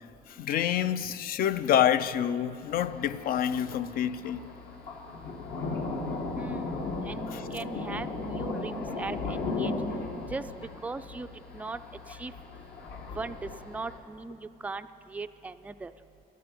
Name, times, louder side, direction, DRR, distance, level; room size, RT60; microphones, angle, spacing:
voice 1, 0.3-4.4 7.3-7.5, left 10 dB, 60° left, 0.5 m, -27 dB
Thunder, 2.7-14.0, left 3 dB, 75° left, 1.9 m, -36 dB
voice 2, 6.4-6.8 7.0-9.7 10.3-10.4 10.8-11.3 11.5-11.8 12.2-12.3 13.1-14.4 14.6-15.9, right 3 dB, 10° right, 0.3 m, -38 dB
12.0 x 9.4 x 7.7 m
cardioid pair, 110°, 17 cm